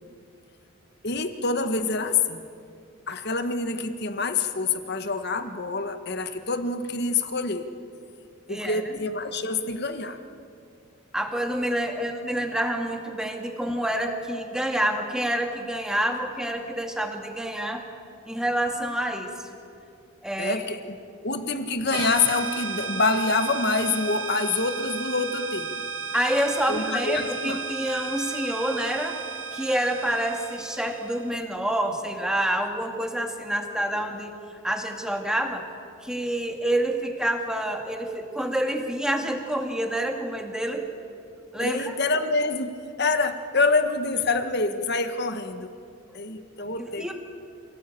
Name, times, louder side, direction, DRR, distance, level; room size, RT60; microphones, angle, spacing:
voice 1, 1.0-2.4 3.1-7.7 8.5-10.2 11.9-12.0 12.4-12.5 20.4-20.9 21.2-25.8 26.7-27.6 41.6-42.7 43.0-45.7 46.1-47.1, left 3 dB, 55° left, 8 dB, 1.6 m, -26 dB
voice 2, 8.5-8.8 11.1-17.8 18.2-19.5 20.2-20.6 26.1-29.2 29.5-35.6 36.0-41.0 41.5-41.9 46.8-47.1, right 1 dB, 5° right, 3 dB, 2.2 m, -28 dB
sound 1, 21.9-31.3, right 5 dB, 75° right, 2.2 m, -34 dB
27.0 x 18.0 x 8.7 m, 2.4 s
head